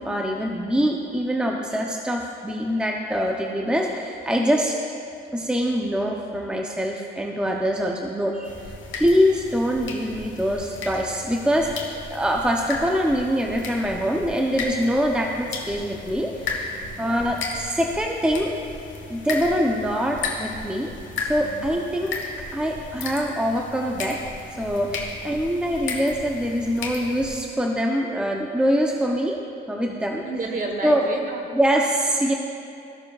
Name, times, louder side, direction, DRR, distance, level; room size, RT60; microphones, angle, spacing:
voice 1, 0.0-4.7 5.3-8.5 8.9-16.7 17.0-18.5 19.1-20.9 21.2-22.2 22.5-24.2 24.6-29.4 29.7-30.2 30.8-31.0 31.5-32.3, equal, 5° right, 0 dB, 0.7 m, -24 dB
sound 1, 8.4-27.4, left 3 dB, 70° left, 1.4 m, -35 dB
voice 2, 16.7-17.0 21.4-21.7 30.2-31.6, right 3 dB, 45° right, 2 dB, 1.4 m, -32 dB
15.5 x 6.7 x 2.4 m, 2.7 s
cardioid pair, 90°, 20 cm